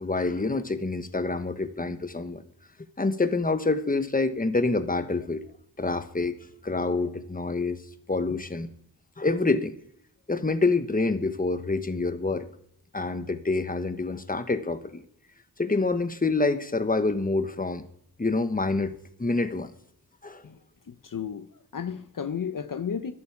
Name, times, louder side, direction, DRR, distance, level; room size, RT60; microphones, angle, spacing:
voice 1, 0.0-2.4 3.0-5.4 5.8-6.4 6.6-7.8 8.1-8.7 9.2-9.7 10.3-12.5 12.9-15.0 15.6-17.8 18.2-19.7 20.2-20.4, left 3 dB, 20° left, 10 dB, 1.3 m, -27 dB
voice 2, 20.9-23.1, left 7 dB, 50° left, 10 dB, 0.9 m, -33 dB
12.0 x 9.6 x 7.2 m, 0.67 s
cardioid pair, 50°, 41 cm